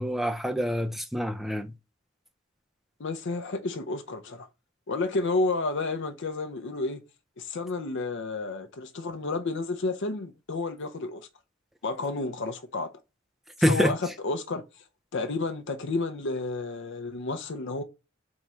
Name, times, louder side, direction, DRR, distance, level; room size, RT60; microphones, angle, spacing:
voice 1, 0.0-1.7 13.6-13.9, equal, ahead, 0.3 m, -26 dB
voice 2, 3.0-4.5 4.9-7.0 7.4-11.3 11.8-12.9 13.6-14.6 15.1-17.8, left 3 dB, 55° left, 0.6 m, -31 dB
3.6 x 3.0 x 4.2 m
head